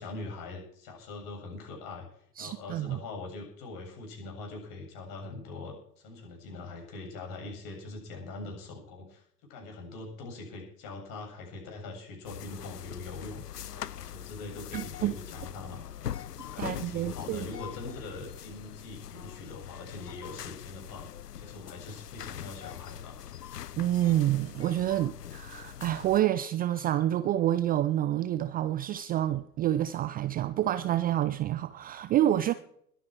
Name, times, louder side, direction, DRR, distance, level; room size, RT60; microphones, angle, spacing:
voice 1, 0.0-2.1 2.4-9.2 9.5-13.4 13.7-15.8 16.4-21.1 21.3-23.3, left 3 dB, 45° left, 7.8 m, -42 dB
voice 2, 2.4-3.0 14.7-15.1 16.6-17.5 23.8-32.5, right 13 dB, 20° right, 0.5 m, -28 dB
sound 1, 12.2-26.2, left 10 dB, 85° left, 0.6 m, -42 dB
21.5 x 9.1 x 4.7 m
figure-of-eight pair, 85°, 46 cm